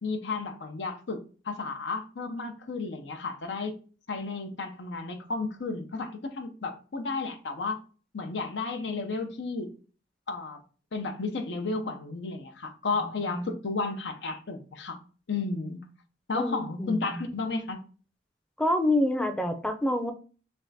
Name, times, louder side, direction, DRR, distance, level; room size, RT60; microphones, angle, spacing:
voice 1, 0.0-3.8 4.1-7.8 8.1-9.7 10.3-10.6 10.9-15.0 15.3-15.8 16.3-17.8, left 3 dB, 90° left, 0.7 m, -33 dB
voice 2, 16.3-17.2 18.6-20.1, left 1 dB, 5° left, 0.5 m, -27 dB
3.5 x 3.3 x 4.0 m
head